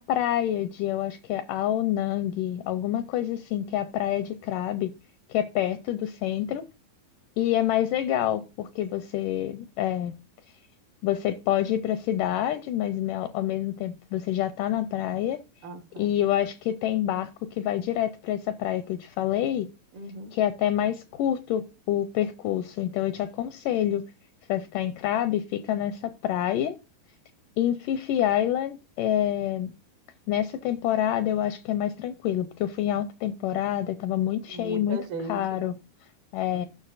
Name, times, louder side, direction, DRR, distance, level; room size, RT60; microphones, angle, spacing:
voice 1, 0.0-4.9 5.3-6.6 7.4-10.1 11.0-15.4 16.0-19.7 20.3-24.0 24.5-26.8 27.6-29.7 30.3-35.0 35.3-35.8 36.3-36.7, left 11 dB, 80° left, 2.0 m, -27 dB
voice 2, 15.6-16.2 19.9-20.3 34.5-35.7 36.5-36.7, right 1 dB, 85° right, 3.6 m, -38 dB
16.5 x 6.1 x 2.5 m
omnidirectional pair, 4.2 m